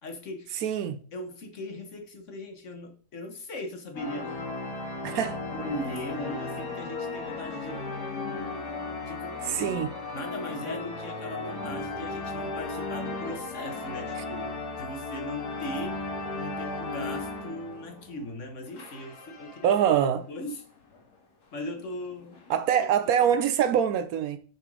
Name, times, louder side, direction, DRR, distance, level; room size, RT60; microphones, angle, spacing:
voice 1, 0.0-0.6 1.1-4.4 5.5-7.8 9.1-9.7 10.1-16.0 16.3-19.7 20.3-20.6 21.5-22.4 23.3-23.4, left 1 dB, 50° left, 1.4 m, -39 dB
voice 2, 0.6-1.0 5.0-5.4 9.4-9.9 19.6-20.3 22.5-24.4, right 9 dB, 70° right, 1.0 m, -24 dB
sound 1, 3.9-18.3 18.7-19.9 20.5-20.6 20.8-21.0 21.8-22.8, left 3 dB, 85° left, 2.3 m, -36 dB
6.8 x 4.3 x 4.7 m
omnidirectional pair, 1.7 m